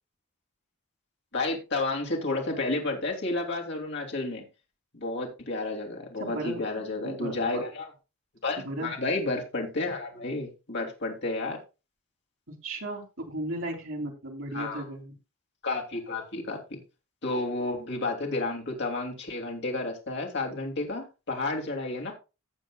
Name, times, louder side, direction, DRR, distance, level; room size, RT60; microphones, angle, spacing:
voice 1, 1.3-4.4 4.9-7.9 8.4-11.6 14.5-14.8 15.6-16.8 17.2-22.1, left 2 dB, 55° left, 1 dB, 2.8 m, -31 dB
voice 2, 6.2-7.6 8.6-8.9 12.5-15.1, right 1 dB, 65° right, 0 dB, 3.3 m, -36 dB
16.5 x 7.1 x 2.4 m, 0.29 s
head